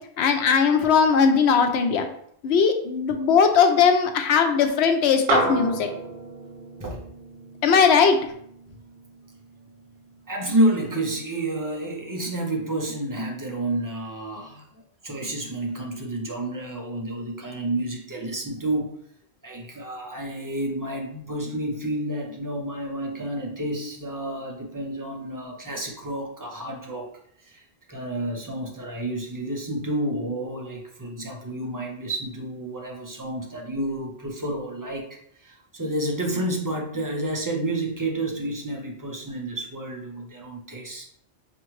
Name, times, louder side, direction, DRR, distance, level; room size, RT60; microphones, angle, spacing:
voice 1, 0.2-2.1 2.4-5.9 7.6-8.2, left 6 dB, 85° left, 6 dB, 0.9 m, -19 dB
sound 1, 5.3-9.9, right 3 dB, 60° right, 0.8 m, -31 dB
voice 2, 10.3-19.0 19.4-27.1 27.4-41.1, right 1 dB, 25° right, 0 dB, 0.5 m, -30 dB
4.5 x 2.5 x 3.1 m, 0.68 s
omnidirectional pair, 1.1 m